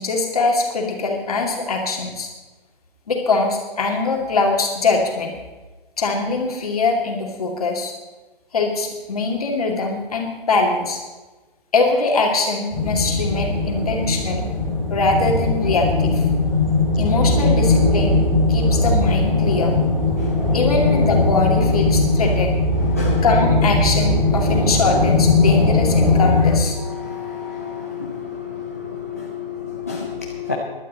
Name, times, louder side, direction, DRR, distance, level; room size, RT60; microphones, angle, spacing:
voice 1, 0.0-2.3 3.1-5.3 6.0-7.9 8.5-11.0 11.7-14.5 14.9-16.2 17.0-18.2 18.5-19.8 20.5-22.6 23.2-26.7, left 3 dB, 40° left, 1 dB, 2.5 m, -22 dB
sound 1, 12.7-26.6, left 2 dB, 5° right, 2.5 m, -19 dB
voice 2, 20.2-20.8 21.9-22.4 22.7-23.3 24.0-24.7 25.4-25.6 26.1-26.2 26.7-30.5, left 6 dB, 15° left, -4 dB, 0.6 m, -31 dB
17.0 x 11.5 x 4.2 m, 1.2 s
hypercardioid pair, 175°, 29 cm